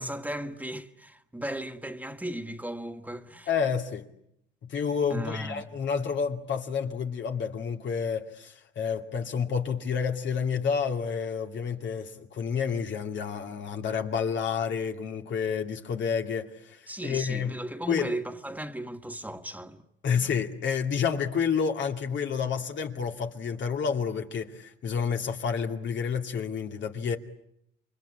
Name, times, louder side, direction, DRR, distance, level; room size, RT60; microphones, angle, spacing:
voice 1, 0.0-3.5 5.1-5.6 16.9-19.8, right 1 dB, 10° right, 1.6 m, -36 dB
voice 2, 3.5-4.1 4.7-17.6 17.9-18.1 20.0-27.2, left 6 dB, 65° left, 2.4 m, -29 dB
28.5 x 24.0 x 8.6 m
cardioid pair, 90°, 20 cm